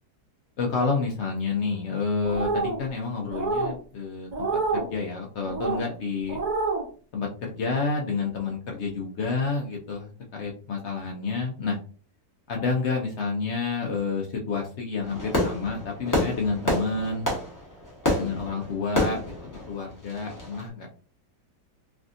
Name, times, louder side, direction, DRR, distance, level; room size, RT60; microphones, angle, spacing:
voice 1, 0.6-4.5 4.7-6.4 7.1-11.8 12.5-17.3 18.1-20.9, left 4 dB, 85° left, 0 dB, 0.6 m, -29 dB
sound 1, 2.2-2.8 3.3-3.7 4.3-4.9 5.4-5.8 6.3-6.8, right 3 dB, 55° right, 0.5 m, -27 dB
Fireworks, 15.0-20.6, left 1 dB, 15° left, 0.8 m, -29 dB
3.4 x 2.5 x 2.5 m, 0.41 s
omnidirectional pair, 1.9 m